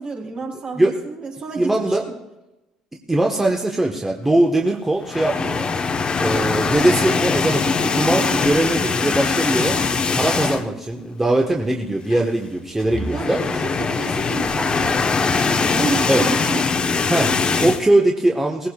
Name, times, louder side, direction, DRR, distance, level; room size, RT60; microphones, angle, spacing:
voice 1, 0.0-2.0 5.4-5.7 8.1-8.4 13.1-16.6, right 4 dB, 45° right, -3 dB, 4.4 m, -30 dB
voice 2, 1.6-2.0 3.1-5.7 6.2-9.8 10.1-13.4 16.1-16.2 17.1-18.7, right 1 dB, 10° right, 0 dB, 1.4 m, -20 dB
sound 1, 5.0-10.8 11.2-11.4 11.6-11.7 12.8-17.8, left 4 dB, 35° left, 1.2 m, -21 dB
Door, 7.5-10.0 11.8-11.9 12.1-12.5, left 7 dB, 90° left, 0.9 m, -40 dB
18.5 x 16.0 x 2.5 m, 0.99 s
hypercardioid pair, 60°, 3 cm